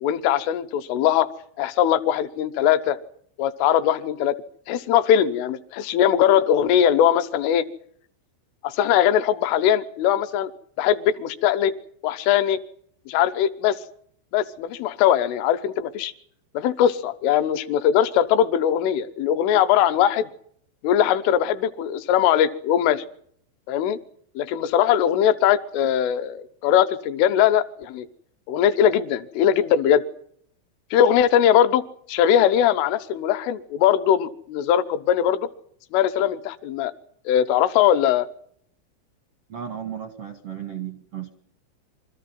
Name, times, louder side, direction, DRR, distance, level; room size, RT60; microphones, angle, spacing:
voice 1, 0.0-1.3 1.6-3.0 3.4-4.4 4.7-7.7 8.6-10.5 10.8-11.7 12.0-12.6 13.1-13.8 14.3-16.1 16.6-20.3 20.8-23.1 23.7-24.0 24.4-28.1 28.5-30.0 30.9-31.8 32.1-35.5 35.9-36.9 37.3-38.3, left 10 dB, 80° left, 10 dB, 3.5 m, -20 dB
voice 2, 39.5-41.3, right 9 dB, 85° right, 6 dB, 1.3 m, -34 dB
25.5 x 14.0 x 9.5 m, 0.65 s
omnidirectional pair, 5.8 m